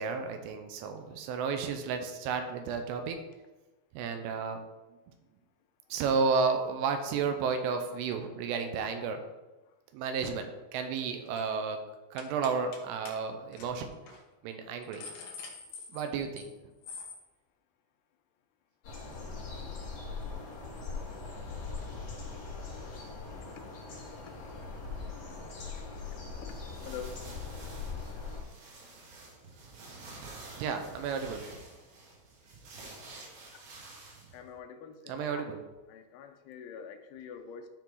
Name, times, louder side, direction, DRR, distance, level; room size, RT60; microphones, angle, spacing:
voice 1, 0.0-3.2 3.9-4.6 5.9-9.2 9.9-11.8 12.1-13.9 14.4-15.0 15.9-16.5 30.6-31.4 35.1-35.6, right 5 dB, 85° right, 6 dB, 3.3 m, -32 dB
sound 1, 10.7-11.0 11.3-11.5 12.2-12.8 13.1-13.2 13.5-13.7 14.1-14.2 14.6-16.5 16.8-17.2, left 5 dB, 70° left, 2.3 m, -45 dB
sound 2, 18.8-28.4, left 4 dB, 50° left, 2.5 m, -41 dB
sound 3, 26.0-34.5, right 3 dB, 70° right, 4.0 m, -50 dB
voice 2, 26.8-27.1 34.3-35.6 35.9-37.7, left 7 dB, 90° left, 6 dB, 3.1 m, -45 dB
12.5 x 4.8 x 3.9 m, 1.1 s
omnidirectional pair, 5.5 m